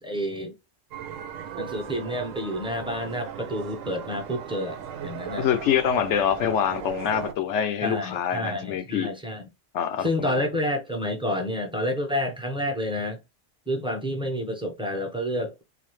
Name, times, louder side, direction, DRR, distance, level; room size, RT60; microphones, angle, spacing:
voice 1, 0.0-0.5 1.6-5.5 7.8-9.5 10.0-13.2 13.7-15.6, left 1 dB, 5° right, 0.7 m, -29 dB
sound 1, 0.9-7.3, right 8 dB, 85° right, 1.0 m, -37 dB
voice 2, 5.4-9.1 9.7-10.5, left 9 dB, 70° left, 0.9 m, -25 dB
3.9 x 2.5 x 3.1 m
omnidirectional pair, 1.3 m